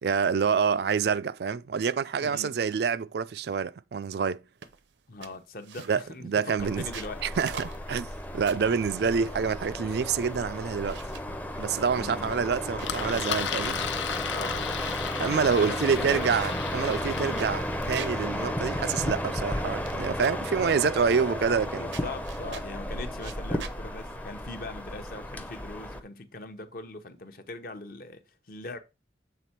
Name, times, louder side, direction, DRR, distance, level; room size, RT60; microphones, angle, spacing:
voice 1, 0.0-4.4 5.9-6.9 7.2-11.0 11.6-13.8 15.2-21.9, right 6 dB, 60° right, 0.4 m, -27 dB
voice 2, 2.2-2.5 5.1-7.2 11.9-12.4 14.3-14.7 15.4-15.8 16.1-16.4 17.2-17.4 21.8-28.2 28.5-28.8, left 2 dB, 50° left, 0.8 m, -41 dB
sound 1, 4.6-4.9 5.2-6.2 6.7-8.8 9.3-10.2 10.5-11.3 12.0-13.0 13.5-13.6 13.8-14.2 14.5-15.2 15.7-18.3 18.6-18.7 18.9-19.9 20.2-20.5 21.3-21.7 21.9-22.8 23.2-23.8, right 6 dB, 80° right, 0.7 m, -45 dB
sound 2, 6.6-26.0, equal, 10° left, 0.6 m, -34 dB
Engine, 12.8-18.1, left 8 dB, 85° left, 0.7 m, -35 dB
7.6 x 3.6 x 4.3 m
head